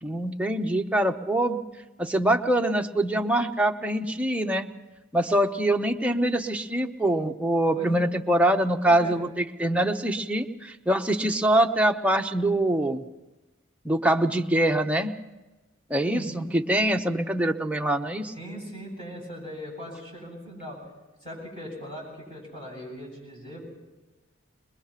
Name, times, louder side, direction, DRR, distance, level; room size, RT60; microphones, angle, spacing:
voice 1, 0.0-1.6 2.0-4.7 5.1-13.0 13.8-15.1 15.9-18.3, right 1 dB, 5° right, 3 dB, 0.8 m, -24 dB
voice 2, 7.7-8.0 8.8-9.1 16.1-16.5 18.3-20.8 21.2-23.7, equal, 25° left, -3 dB, 7.9 m, -39 dB
21.5 x 21.0 x 5.8 m, 1.1 s
head